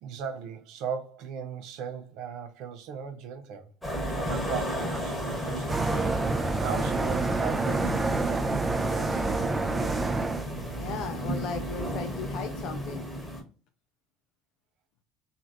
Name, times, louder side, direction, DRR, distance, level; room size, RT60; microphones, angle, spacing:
voice 1, 0.0-3.7 4.1-9.4 9.8-10.0, right 7 dB, 65° right, 0.5 m, -38 dB
sound 1, 3.8-13.4, equal, 5° left, 1.2 m, -33 dB
sound 2, 5.7-10.5, right 3 dB, 15° right, 0.5 m, -28 dB
voice 2, 10.8-13.1, left 6 dB, 60° left, 0.4 m, -37 dB
3.1 x 2.5 x 2.5 m
hypercardioid pair, 75°, 0 cm